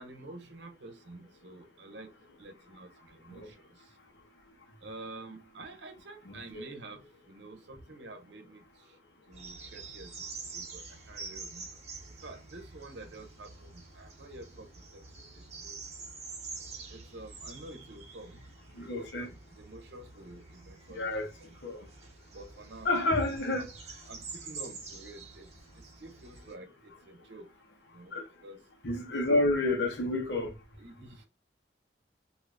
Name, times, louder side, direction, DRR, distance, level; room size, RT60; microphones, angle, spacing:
voice 1, 0.0-2.1 2.4-3.6 4.8-8.6 9.3-11.7 12.2-15.0 15.3-15.8 16.9-18.4 18.8-21.1 21.4-21.6 22.3-23.0 24.1-25.5 25.7-27.5 27.9-28.6 30.8-31.2, right 2 dB, 80° right, 0.7 m, -49 dB
sound 1, 9.3-26.5, right 4 dB, 40° right, 0.9 m, -47 dB
voice 2, 18.8-19.3 21.0-21.3 21.6-21.8 22.8-23.7 28.1-28.2 28.8-30.5, left 2 dB, 80° left, 1.0 m, -29 dB
3.4 x 2.7 x 2.5 m
head